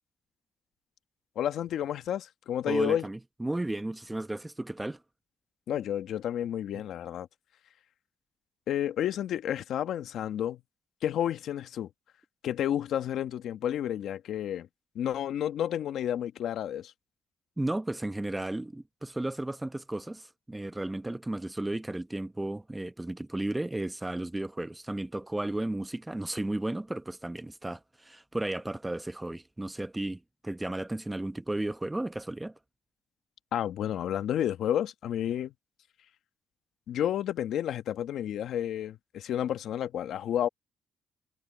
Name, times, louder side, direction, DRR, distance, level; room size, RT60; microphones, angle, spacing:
voice 1, 1.3-3.0 5.7-7.3 8.7-10.6 11.0-11.9 12.4-14.7 14.9-16.9 33.5-35.5 36.9-40.5, left 10 dB, 75° left, 1.3 m, -31 dB
voice 2, 2.7-5.0 17.6-32.5, right 1 dB, 10° right, 1.0 m, -34 dB
cardioid pair, 90°, 0 cm